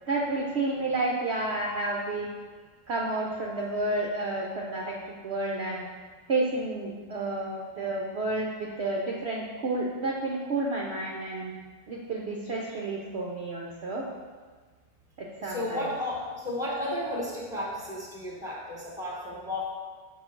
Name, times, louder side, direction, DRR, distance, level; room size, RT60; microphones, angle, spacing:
voice 1, 0.1-2.3 2.9-5.0 5.2-5.8 6.3-11.5 11.9-14.1 15.2-15.8, right 2 dB, 75° right, -3 dB, 0.6 m, -30 dB
voice 2, 15.4-19.7, left 1 dB, ahead, -3 dB, 0.9 m, -33 dB
6.5 x 3.1 x 5.8 m, 1.4 s
omnidirectional pair, 2.0 m